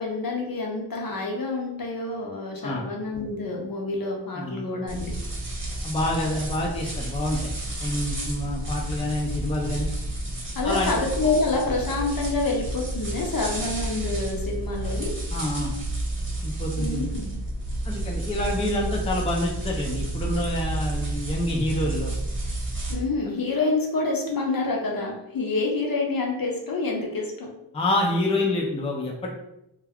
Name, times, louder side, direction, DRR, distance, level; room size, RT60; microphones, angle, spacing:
voice 1, 0.0-5.1 10.5-15.1 16.8-17.3 22.9-27.5, left 3 dB, 50° left, -1 dB, 0.7 m, -27 dB
voice 2, 4.4-4.7 5.8-7.5 7.8-9.9 10.6-11.0 15.3-15.7 16.4-17.0 17.9-22.1 27.7-29.3, left 1 dB, 15° left, -1 dB, 0.5 m, -27 dB
sound 1, 4.9-22.9, right 1 dB, 25° right, 0.9 m, -31 dB
2.3 x 2.2 x 3.4 m, 0.87 s
cardioid pair, 65°, 46 cm